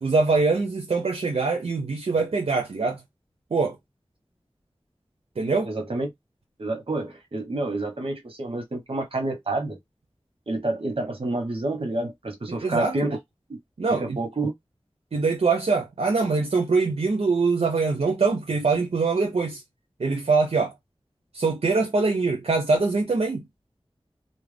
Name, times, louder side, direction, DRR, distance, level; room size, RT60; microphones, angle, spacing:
voice 1, 0.0-3.0 3.5-3.8 5.4-5.7 12.5-13.0 13.8-14.2 15.1-19.6 20.0-20.7 21.3-23.4, right 4 dB, 80° right, 0.5 m, -23 dB
voice 2, 5.6-6.1 6.6-9.8 10.5-13.2 13.9-14.5, right 2 dB, 65° right, 1.0 m, -28 dB
2.4 x 2.1 x 3.3 m
wide cardioid pair, 55°, 10 cm